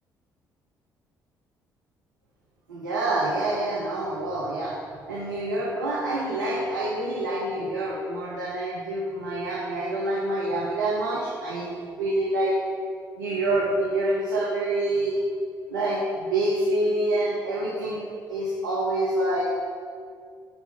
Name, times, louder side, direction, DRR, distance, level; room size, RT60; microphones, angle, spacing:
voice 1, 2.7-4.7 5.1-12.5 13.2-15.1 15.7-18.0 18.3-19.4, right 1 dB, 80° right, -6 dB, 1.0 m, -27 dB
8.9 x 4.5 x 5.8 m, 2.2 s
figure-of-eight pair, 45°, 10 cm